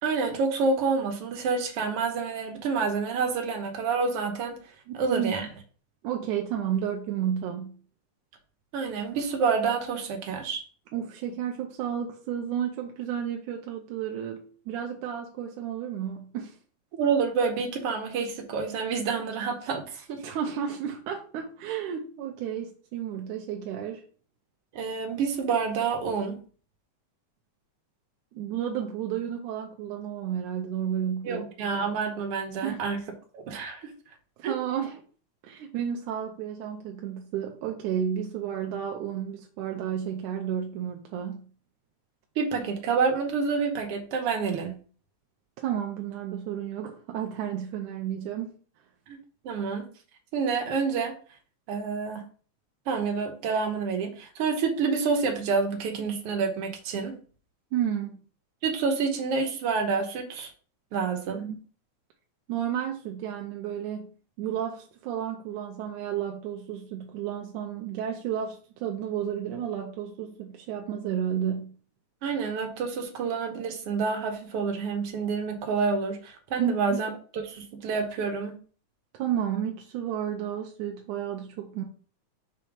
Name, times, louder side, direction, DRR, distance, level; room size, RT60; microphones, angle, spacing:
voice 1, 0.0-4.5 4.9-5.5 8.7-10.6 16.9-20.2 24.7-26.4 31.2-33.0 33.3-33.9 34.4-34.5 42.4-44.7 49.1-49.2 49.4-49.9 50.3-51.2 51.7-52.2 52.9-57.2 58.6-60.5 60.9-61.5 72.2-78.6, right 5 dB, 60° right, 4 dB, 1.9 m, -28 dB
voice 2, 4.9-5.5 6.0-7.8 10.9-16.6 20.2-24.0 28.3-31.5 32.6-32.8 34.4-35.0 35.4-41.5 45.6-48.5 57.7-58.2 61.4-61.6 62.5-64.1 64.4-71.7 76.6-77.0 79.1-81.8, right 9 dB, 85° right, 2 dB, 2.2 m, -32 dB
5.8 x 4.1 x 5.0 m, 0.41 s
omnidirectional pair, 3.5 m